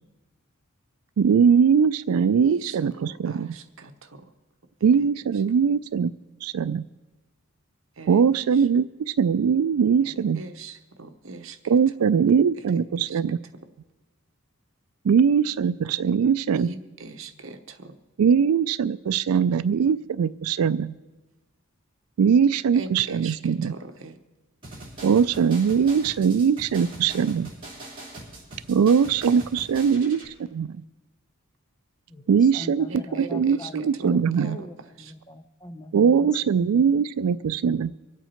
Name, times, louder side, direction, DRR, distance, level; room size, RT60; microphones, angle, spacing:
voice 1, 1.2-3.5 4.8-6.1 6.4-6.9 8.1-10.4 11.7-13.4 15.0-16.7 18.2-20.9 22.2-23.7 25.0-27.5 28.7-30.7 32.3-32.9 33.1-34.6 35.9-37.9, right 6 dB, 90° right, 16 dB, 0.4 m, -21 dB
voice 2, 2.4-4.3 8.0-8.5 10.0-11.6 13.0-13.2 16.5-18.0 22.7-24.2 32.9-34.7 35.0-35.1, right 3 dB, 65° right, 7 dB, 1.0 m, -41 dB
sound 1, 24.6-30.3, right 2 dB, 25° right, 3.8 m, -42 dB
voice 3, 32.1-36.3 36.7-36.8, left 1 dB, 20° left, 7 dB, 0.7 m, -41 dB
24.5 x 8.3 x 4.4 m, 1.2 s
head